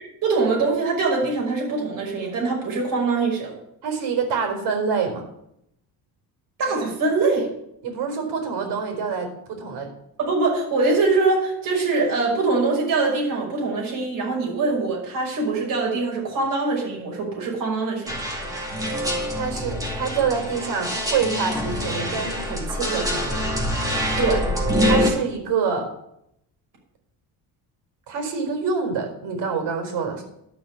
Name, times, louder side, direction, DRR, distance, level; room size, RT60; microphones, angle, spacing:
voice 1, 0.2-3.5 6.6-7.5 10.2-18.1 24.2-24.4, right 3 dB, 50° right, -2 dB, 5.7 m, -23 dB
voice 2, 3.8-5.3 7.8-9.9 19.4-23.5 24.9-25.9 28.1-30.2, right 5 dB, 80° right, 4 dB, 4.5 m, -26 dB
sound 1, 18.1-25.1, equal, 10° right, 2.3 m, -25 dB
12.0 x 6.2 x 8.4 m, 0.78 s
cardioid pair, 175°, 40 cm